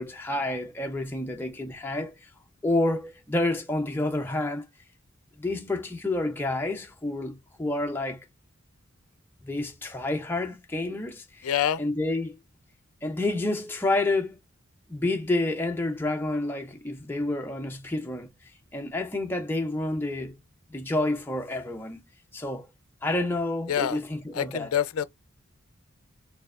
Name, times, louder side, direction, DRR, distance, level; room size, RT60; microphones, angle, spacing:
voice 1, 0.0-2.3 2.6-4.6 5.4-8.3 9.4-11.5 11.8-12.3 13.0-14.4 14.9-18.3 18.7-20.4 20.7-22.0 22.3-22.7 23.0-24.7, left 2 dB, 10° left, 0.5 m, -29 dB
voice 2, 11.4-11.8 23.7-24.0 24.3-25.0, left 9 dB, 80° left, 0.4 m, -26 dB
4.4 x 2.7 x 2.4 m
head